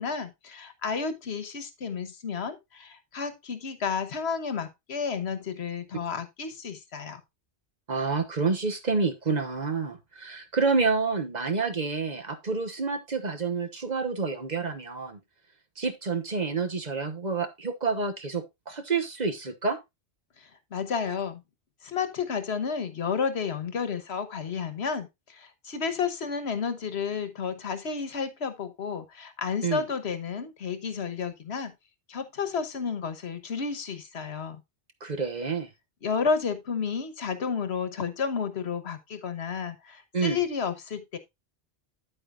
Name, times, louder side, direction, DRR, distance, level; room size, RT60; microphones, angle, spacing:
voice 1, 0.0-7.2 20.4-21.4 21.8-31.7 32.1-34.6 36.0-41.2, left 6 dB, 85° left, 1.4 m, -31 dB
voice 2, 7.9-15.2 15.8-19.8 29.6-29.8 35.0-35.7 40.1-40.4, right 4 dB, 45° right, 1.2 m, -28 dB
8.9 x 8.9 x 2.4 m
omnidirectional pair, 1.1 m